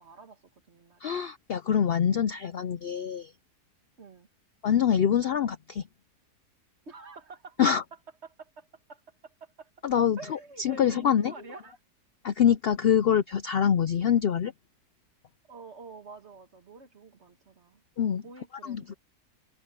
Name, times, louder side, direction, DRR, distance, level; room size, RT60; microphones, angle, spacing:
voice 1, 0.0-1.1 4.0-4.3 6.9-7.6 8.2-9.7 10.2-11.8 15.5-17.8 18.2-19.0, right 4 dB, 45° right, 1.9 m, -48 dB
voice 2, 1.0-3.3 4.6-5.8 7.6-7.8 9.8-11.3 12.2-14.5 18.0-18.2 18.6-18.9, left 8 dB, 80° left, 0.5 m, -25 dB
omnidirectional pair, 1.7 m